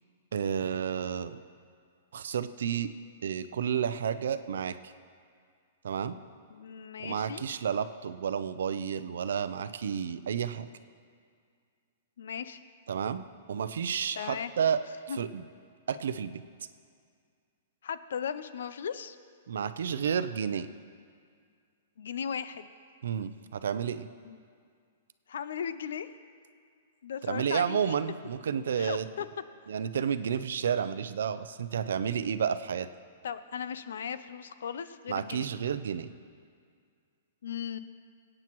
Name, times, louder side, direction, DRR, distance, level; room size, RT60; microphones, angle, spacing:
voice 1, 0.3-1.4 2.1-2.9 3.2-4.9 5.8-6.1 7.0-10.7 12.9-13.2 13.5-14.8 15.1-15.4 15.9-16.4 19.5-20.7 23.0-24.1 27.2-29.1 29.7-32.9 35.1-36.1, right 7 dB, 80° right, 12 dB, 0.5 m, -31 dB
voice 2, 6.5-7.4 12.2-12.6 14.2-14.5 15.1-15.2 17.8-19.2 22.0-22.7 24.2-24.4 25.3-26.1 27.0-27.9 28.8-29.3 33.2-35.5 37.4-37.8, left 7 dB, 80° left, 13 dB, 0.5 m, -37 dB
22.5 x 8.8 x 3.1 m, 2.2 s
hypercardioid pair, 170°, 0 cm